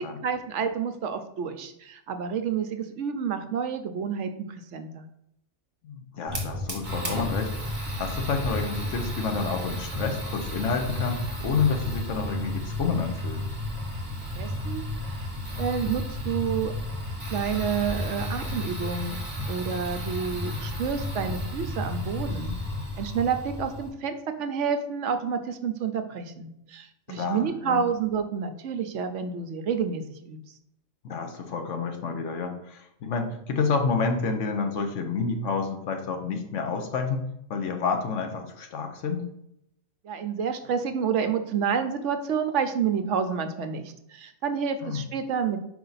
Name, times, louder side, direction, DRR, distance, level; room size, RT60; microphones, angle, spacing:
voice 1, 0.2-5.1 14.2-15.3 15.6-16.7 17.3-19.2 19.5-22.6 23.0-30.5 40.0-45.6, right 6 dB, 70° right, 8 dB, 0.9 m, -29 dB
voice 2, 5.8-13.4 27.1-27.9 31.0-37.2 37.5-39.3 44.8-45.0, left 5 dB, 70° left, 5 dB, 1.1 m, -29 dB
Fire, 6.3-23.9, left 1 dB, 30° right, 1.4 m, -32 dB
5.4 x 4.9 x 3.9 m, 0.78 s
omnidirectional pair, 1.4 m